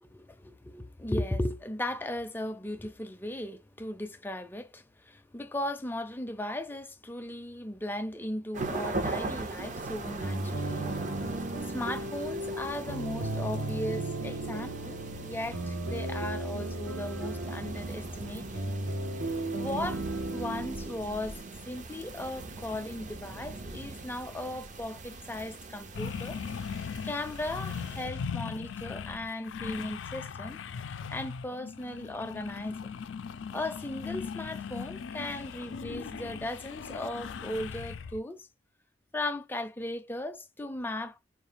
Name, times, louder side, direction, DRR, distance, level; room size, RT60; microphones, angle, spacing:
voice 1, 0.0-10.9 11.7-18.6 19.5-20.0 20.3-21.4 21.7-26.7 27.0-30.6 31.1-32.9 33.5-38.5 39.1-41.2, left 1 dB, 10° left, 0.5 m, -37 dB
sound 1, 8.5-28.0, right 3 dB, 40° right, 0.6 m, -40 dB
sound 2, 10.2-21.9, right 2 dB, 80° right, 1.2 m, -35 dB
sound 3, 25.9-38.2, left 6 dB, 85° left, 0.4 m, -39 dB
4.7 x 2.4 x 3.3 m
head